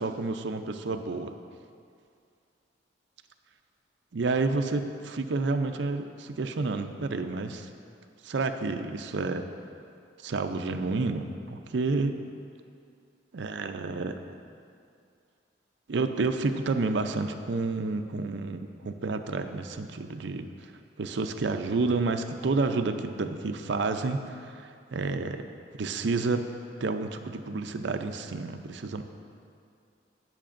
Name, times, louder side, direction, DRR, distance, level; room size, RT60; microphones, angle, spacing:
voice 1, 0.0-1.3 4.1-7.7 8.2-9.5 10.2-12.2 13.3-14.2 15.9-20.7 21.0-25.5 25.8-26.5 26.8-29.0, right 3 dB, 70° right, 7 dB, 0.5 m, -30 dB
17.0 x 6.6 x 2.6 m, 2.4 s
head